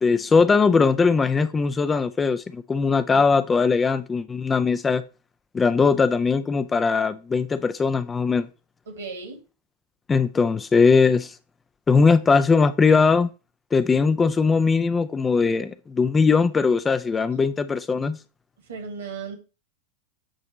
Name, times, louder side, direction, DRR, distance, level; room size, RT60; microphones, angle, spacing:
voice 1, 0.0-5.0 5.5-8.5 10.1-11.3 11.9-13.3 13.7-18.2, left 4 dB, 15° left, 0.4 m, -20 dB
voice 2, 8.9-9.4 18.7-19.4, right 5 dB, 65° right, 2.0 m, -35 dB
8.8 x 3.0 x 5.0 m
figure-of-eight pair, 90°, 0 cm